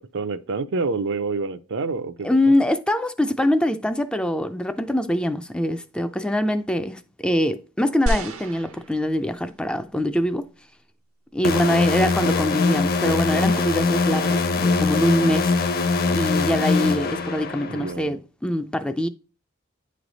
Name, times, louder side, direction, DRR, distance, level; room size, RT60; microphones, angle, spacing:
voice 1, 0.1-2.4 11.4-11.9 17.7-18.1, right 4 dB, 60° right, 0.5 m, -28 dB
voice 2, 2.2-10.5 11.3-15.5 16.1-19.1, left 1 dB, 5° left, 0.3 m, -23 dB
sound 1, 8.1-9.6 10.3-10.4, right 1 dB, 80° right, 0.8 m, -29 dB
sound 2, 11.4-17.9, left 4 dB, 45° left, 0.7 m, -22 dB
9.4 x 3.2 x 3.9 m
head